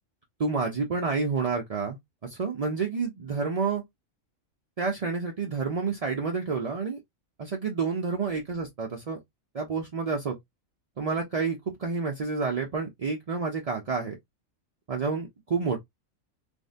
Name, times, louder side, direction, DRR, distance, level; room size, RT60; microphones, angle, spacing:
voice 1, 0.4-3.8 4.8-7.0 7.4-9.2 9.5-10.4 11.0-14.2 14.9-15.8, right 4 dB, 65° right, 0.3 m, -29 dB
3.4 x 2.1 x 2.5 m
omnidirectional pair, 1.4 m